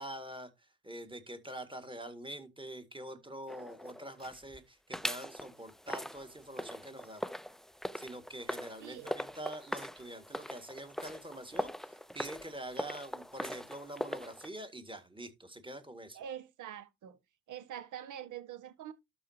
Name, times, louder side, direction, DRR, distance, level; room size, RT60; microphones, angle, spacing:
voice 1, 0.0-7.2 7.9-16.2, right 1 dB, 15° right, 1.9 m, -45 dB
sound 1, 3.5-4.6 4.9-14.5, equal, ahead, 0.6 m, -41 dB
voice 2, 8.8-9.1 16.1-17.2 17.5-18.9, right 10 dB, 60° right, 1.6 m, -45 dB
12.5 x 4.7 x 2.8 m
hypercardioid pair, 65°, 35 cm